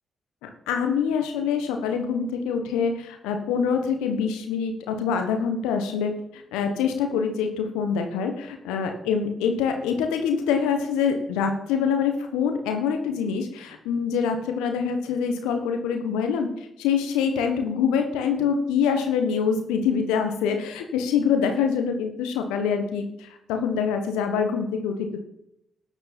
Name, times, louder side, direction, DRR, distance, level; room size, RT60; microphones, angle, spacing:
voice 1, 0.4-16.5 16.8-25.2, left 6 dB, 80° left, 5 dB, 1.3 m, -25 dB
13.5 x 9.6 x 4.5 m, 0.80 s
hypercardioid pair, 40°, 0 cm